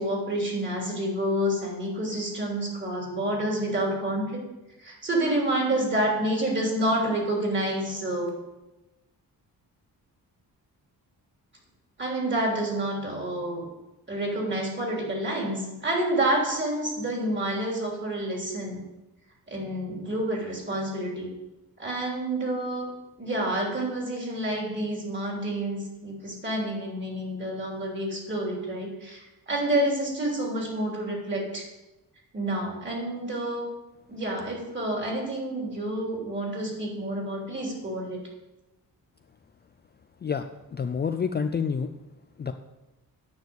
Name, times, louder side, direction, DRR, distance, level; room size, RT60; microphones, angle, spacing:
voice 1, 0.0-4.4 4.8-8.3 12.0-13.7 14.1-18.8 19.5-21.3 21.8-22.9 23.2-31.6 32.3-33.7 34.1-38.2, right 1 dB, 30° right, -1 dB, 3.3 m, -28 dB
voice 2, 40.2-41.9 42.4-42.5, left 6 dB, 30° left, 7 dB, 0.4 m, -28 dB
9.5 x 6.3 x 8.1 m, 1.0 s
wide cardioid pair, 160°, 36 cm